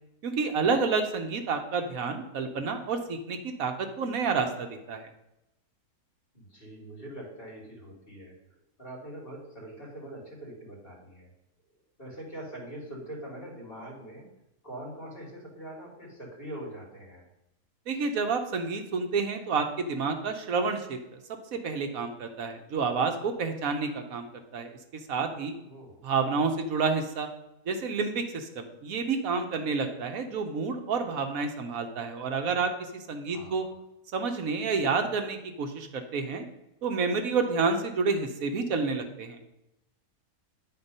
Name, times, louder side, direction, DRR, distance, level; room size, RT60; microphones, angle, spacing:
voice 1, 0.2-5.1 17.9-21.0 21.5-24.3 24.5-24.7 25.1-25.5 26.0-27.3 27.7-33.7 34.1-36.4 36.8-39.4, right 4 dB, 65° right, 6 dB, 1.2 m, -29 dB
voice 2, 6.3-11.3 12.0-14.3 14.6-17.3 25.6-26.0 33.3-33.7, right 1 dB, 35° left, -3 dB, 2.8 m, -43 dB
9.5 x 4.4 x 5.4 m, 0.87 s
omnidirectional pair, 1.6 m